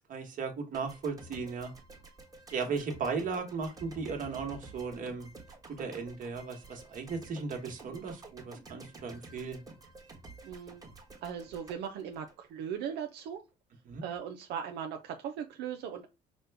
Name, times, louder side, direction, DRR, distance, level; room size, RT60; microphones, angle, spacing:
voice 1, 0.1-1.7 2.5-5.3 5.8-9.6 13.8-14.0, right 5 dB, 50° right, 4 dB, 1.3 m, -36 dB
sound 1, 0.7-12.9, right 3 dB, 20° right, 1.2 m, -51 dB
voice 2, 10.4-10.8 11.2-13.4 14.0-16.1, right 8 dB, 85° right, 4 dB, 0.6 m, -38 dB
5.1 x 2.2 x 3.4 m, 0.26 s
cardioid pair, 110°, 17 cm